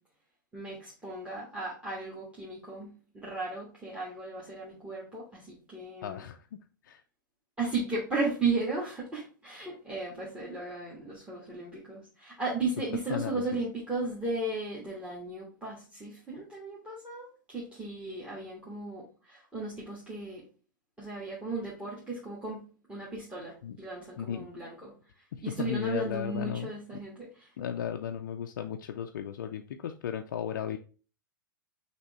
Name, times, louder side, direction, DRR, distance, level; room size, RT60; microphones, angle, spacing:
voice 1, 0.5-6.2 7.6-19.0 19.3-20.4 21.0-24.9 25.4-27.5, right 3 dB, 10° right, -5 dB, 1.5 m, -35 dB
voice 2, 6.0-6.6 6.8-7.0 13.1-13.4 23.6-23.8 24.2-24.5 25.3-26.7 27.6-30.8, left 8 dB, 60° left, 4 dB, 0.4 m, -35 dB
5.9 x 2.8 x 3.1 m, 0.37 s
figure-of-eight pair, 100°, 11 cm